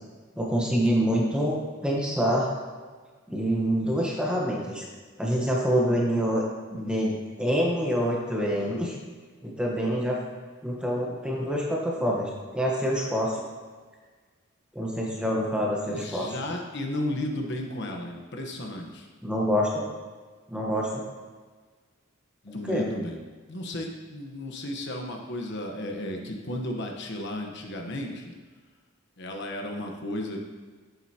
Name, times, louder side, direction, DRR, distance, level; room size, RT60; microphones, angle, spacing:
voice 1, 0.4-2.5 3.3-4.8 5.2-6.4 6.7-9.0 9.4-10.2 10.6-13.4 14.7-16.3 19.2-19.8 20.5-21.0 22.7-22.8, equal, 5° right, -3 dB, 1.0 m, -26 dB
voice 2, 15.9-19.1 22.4-23.2 23.5-28.3 29.2-30.4, left 1 dB, 55° left, 2 dB, 1.1 m, -34 dB
10.5 x 7.9 x 2.9 m, 1.4 s
head